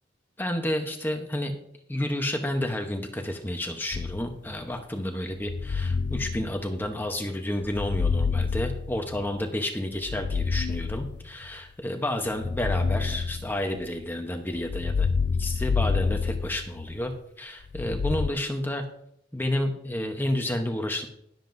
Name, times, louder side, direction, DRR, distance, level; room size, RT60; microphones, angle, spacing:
voice 1, 0.4-1.6 1.9-15.1 15.4-17.1 17.4-18.8 19.3-21.1, left 1 dB, 10° left, 4 dB, 0.9 m, -30 dB
Dark industry FX, 3.9-4.6 5.4-7.1 7.6-9.4 10.0-11.5 12.3-14.0 14.6-17.1 17.7-18.3, left 5 dB, 45° left, 0.3 m, -28 dB
19.5 x 7.6 x 2.6 m, 0.71 s
head